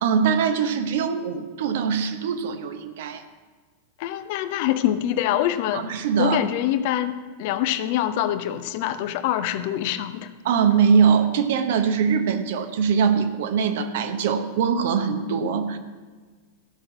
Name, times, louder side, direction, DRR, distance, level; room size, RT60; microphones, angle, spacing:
voice 1, 0.0-3.2 5.7-6.4 10.4-15.8, right 6 dB, 55° right, 8 dB, 0.9 m, -22 dB
voice 2, 4.0-5.9 6.2-10.3, left 12 dB, 50° left, 11 dB, 0.7 m, -25 dB
14.5 x 6.3 x 6.0 m, 1.4 s
figure-of-eight pair, 90°, 0 cm